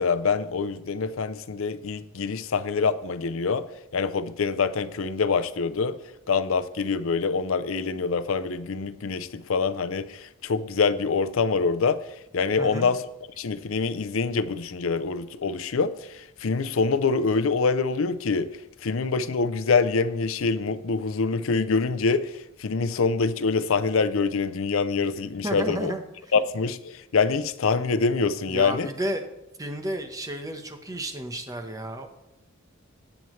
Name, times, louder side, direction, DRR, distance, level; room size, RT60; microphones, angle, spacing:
voice 1, 0.0-3.6 3.9-6.0 6.3-12.0 12.3-13.0 13.4-18.5 18.8-22.3 22.6-25.9 26.3-28.9, left 4 dB, 70° left, 0.5 m, -25 dB
voice 2, 12.6-12.9 25.4-26.0 28.5-29.2 29.6-32.1, right 1 dB, 15° right, 1.0 m, -32 dB
18.0 x 7.0 x 3.2 m
head